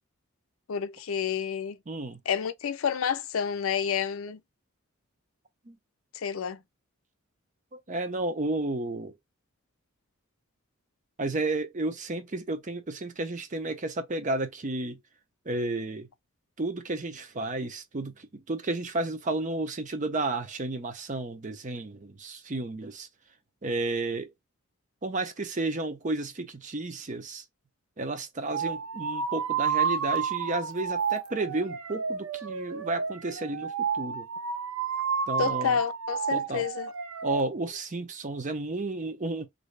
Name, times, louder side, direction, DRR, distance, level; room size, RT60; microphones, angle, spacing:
voice 1, 0.7-1.8 2.3-4.4 6.1-6.6 35.4-36.9, left 7 dB, 70° left, 0.5 m, -29 dB
voice 2, 1.9-2.2 5.7-5.8 7.7-9.1 11.2-15.0 15.5-16.1 16.6-23.1 23.6-24.3 25.0-27.4 28.0-34.3 35.3-35.8 36.3-36.7 37.2-39.5, right 2 dB, 35° right, 0.7 m, -32 dB
sound 1, 28.5-37.4, right 6 dB, 80° right, 0.6 m, -31 dB
3.0 x 2.7 x 3.2 m
head